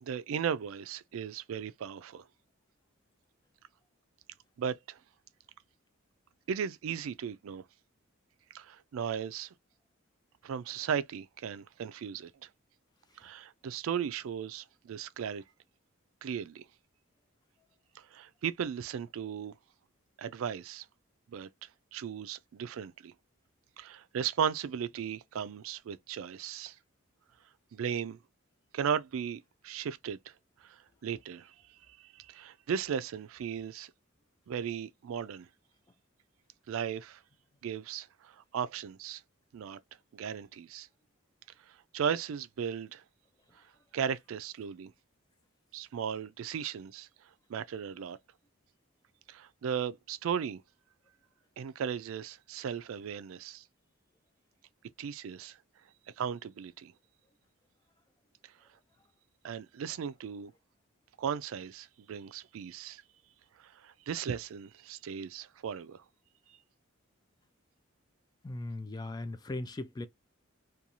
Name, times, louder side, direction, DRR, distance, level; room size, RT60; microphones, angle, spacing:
voice 1, 0.0-2.2 4.6-5.0 6.5-7.6 8.5-9.5 10.4-12.5 13.2-15.4 16.2-16.6 18.0-19.5 20.2-20.9 21.3-23.1 23.8-26.8 27.7-28.2 28.7-30.3 30.6-31.5 32.0-33.9 34.5-35.5 36.7-37.2 37.6-39.2 39.5-39.8 40.1-40.9 41.7-43.0 43.9-44.9 45.7-47.1 47.5-48.2 49.3-50.6 51.6-53.6 55.0-55.6 56.2-56.9 59.4-60.5 61.2-63.0 63.6-66.0, right 7 dB, 75° right, 0.3 m, -36 dB
voice 2, 68.4-70.1, left 2 dB, 20° left, 0.3 m, -38 dB
2.5 x 2.3 x 2.8 m
head